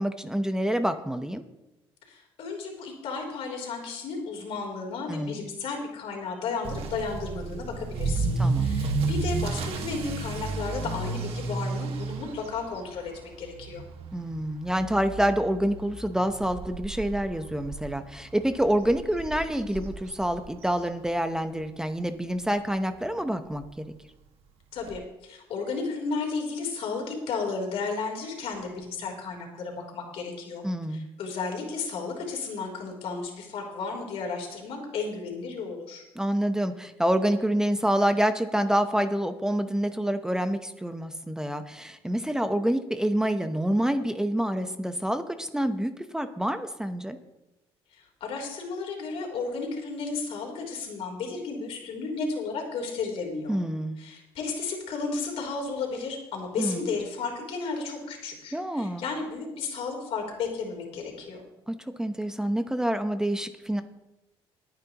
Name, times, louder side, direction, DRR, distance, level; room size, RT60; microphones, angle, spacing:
voice 1, 0.0-1.4 5.1-5.4 8.4-8.7 14.1-23.9 30.6-31.1 36.2-47.2 53.5-54.0 56.6-56.9 58.5-59.0 61.7-63.8, right 1 dB, 5° right, 8 dB, 0.8 m, -27 dB
voice 2, 2.1-13.8 24.7-30.6 30.9-36.0 47.9-53.6 54.0-61.4, left 4 dB, 70° left, 1 dB, 3.5 m, -33 dB
Motor vehicle (road) / Accelerating revving vroom, 6.7-21.5 21.8-22.2 22.7-22.8 23.1-23.2 23.5-23.6 24.9-25.0, right 3 dB, 70° right, 1.7 m, -32 dB
21.0 x 9.3 x 3.0 m, 0.94 s
cardioid pair, 95°, 10 cm